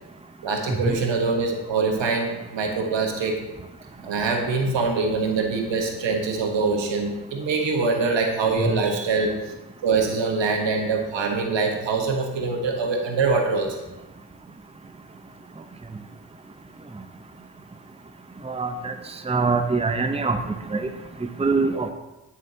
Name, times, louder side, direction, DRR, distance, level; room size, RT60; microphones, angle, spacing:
voice 1, 0.4-3.4 4.0-9.4 9.8-13.9, right 4 dB, 80° right, 2 dB, 1.4 m, -24 dB
voice 2, 18.4-18.9 19.3-20.4 20.7-20.8 21.2-21.9, right 4 dB, 15° right, 7 dB, 0.7 m, -23 dB
12.5 x 5.7 x 2.8 m, 1.0 s
supercardioid pair, 45°, 43 cm